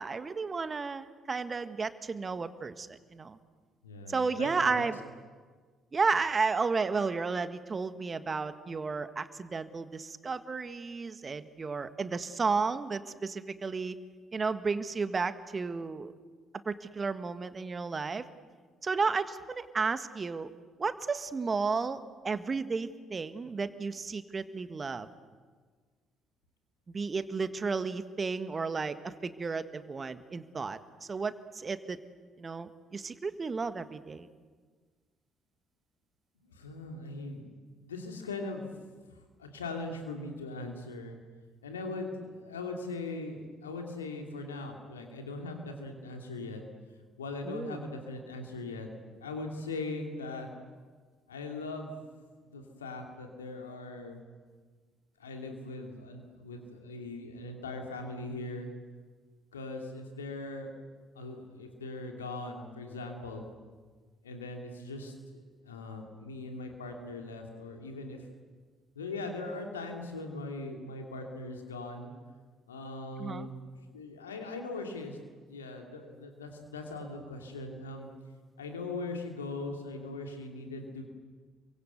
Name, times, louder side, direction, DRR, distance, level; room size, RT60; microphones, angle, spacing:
voice 1, 0.0-3.4 4.1-5.0 5.9-13.9 14.3-16.1 16.6-18.2 18.8-20.5 20.8-25.1 26.9-30.8 31.1-32.0 32.4-34.3 47.5-47.8 73.2-73.5, right 4 dB, 35° right, 11 dB, 1.6 m, -33 dB
voice 2, 3.8-4.9 36.4-38.7 39.4-41.2 41.6-46.6 47.2-48.9 49.1-50.5 51.3-52.0 52.4-54.2 55.2-58.7 59.5-60.7 61.1-63.4 64.2-68.2 68.9-72.1 72.7-73.6 73.9-78.1 78.6-81.1, left 2 dB, 85° left, 3 dB, 2.8 m, -40 dB
28.0 x 24.0 x 8.0 m, 1.5 s
figure-of-eight pair, 45°, 0 cm